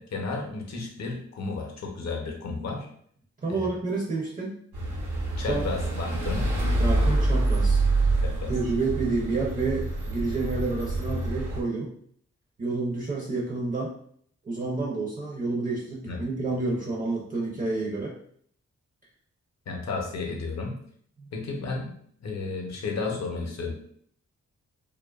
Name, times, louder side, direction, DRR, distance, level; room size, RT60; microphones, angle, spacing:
voice 1, 0.0-2.9 3.5-3.7 5.4-6.5 8.2-8.5 16.1-16.2 19.7-20.8 21.3-21.9 22.2-23.7, left 3 dB, 65° left, 1 dB, 0.7 m, -32 dB
voice 2, 3.4-4.6 5.4-5.7 6.8-8.1 8.5-11.9 12.6-13.9 14.4-18.1 21.2-21.3, right 3 dB, 30° right, -3 dB, 0.5 m, -29 dB
sound 1, 4.7-11.6, right 2 dB, 80° right, 0.8 m, -26 dB
2.7 x 2.2 x 2.3 m, 0.62 s
wide cardioid pair, 125°, 29 cm